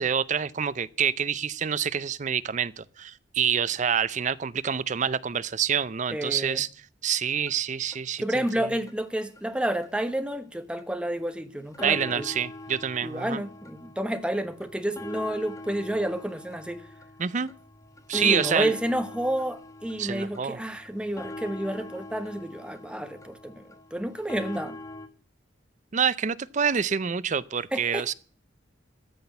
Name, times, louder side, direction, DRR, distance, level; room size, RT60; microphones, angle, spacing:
voice 1, 0.0-6.7 7.0-8.7 11.8-13.4 17.2-17.5 18.1-18.7 20.0-20.6 25.9-28.1, right 7 dB, 40° right, 0.5 m, -27 dB
voice 2, 6.1-6.6 8.2-12.3 13.0-16.8 18.1-24.8 27.7-28.1, right 1 dB, 5° right, 1.0 m, -30 dB
sound 1, 7.5-7.6 7.9-8.0 8.4-8.5 8.9-9.0 9.4-9.5 9.8-9.9 10.3-10.4 10.8-10.9 11.3-11.4 11.7-25.1, left 2 dB, 15° left, 1.1 m, -43 dB
14.0 x 6.1 x 8.1 m
head